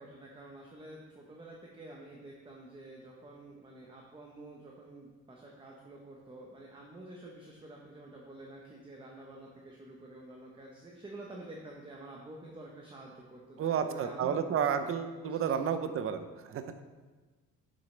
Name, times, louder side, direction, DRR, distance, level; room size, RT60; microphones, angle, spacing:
voice 1, 0.0-14.7 15.2-15.8, right 2 dB, 15° right, -1 dB, 0.9 m, -49 dB
voice 2, 13.6-16.6, right 7 dB, 40° right, 9 dB, 0.6 m, -31 dB
9.0 x 7.5 x 3.3 m, 1.3 s
cardioid pair, 135°, 33 cm